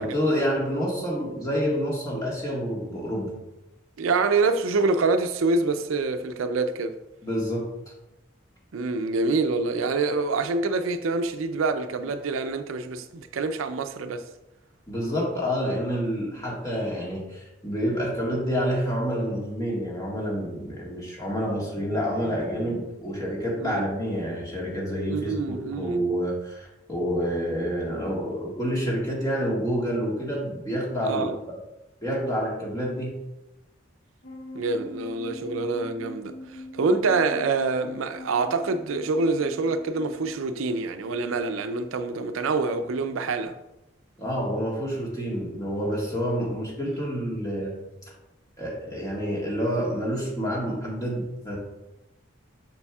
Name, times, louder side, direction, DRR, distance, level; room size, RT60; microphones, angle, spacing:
voice 1, 0.0-3.3 7.2-7.7 14.9-31.3 32.0-33.1 44.2-47.7 48.6-51.6, equal, 15° left, 1.6 m, -28 dB
voice 2, 4.0-6.9 8.7-14.2 20.9-21.0 23.6-23.8 25.1-26.0 31.0-31.4 34.5-43.5, right 3 dB, 90° right, 0.5 m, -26 dB
sound 1, 34.2-41.7, left 2 dB, 70° left, 1.1 m, -43 dB
6.9 x 6.1 x 2.3 m
head